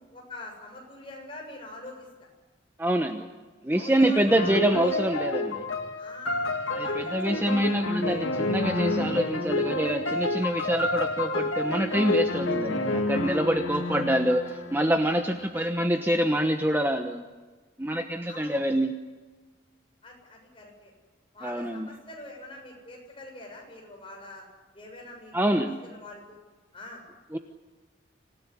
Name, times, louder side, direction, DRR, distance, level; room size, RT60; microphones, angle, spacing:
voice 1, 0.1-2.3 3.7-4.9 6.0-7.5 8.1-8.2 13.7-14.0 15.5-15.7 18.3-18.6 20.0-20.9 21.3-24.4 24.7-26.4 26.7-27.0, left 2 dB, 25° left, 0 dB, 7.1 m, -44 dB
voice 2, 2.8-3.3 3.6-5.7 6.7-17.2 17.8-19.0 21.4-21.9 25.3-25.8 27.3-27.4, right 1 dB, 10° right, 5 dB, 1.0 m, -26 dB
sound 1, 4.3-15.5, left 2 dB, 90° left, 2.4 m, -29 dB
26.5 x 17.5 x 9.9 m, 1.3 s
head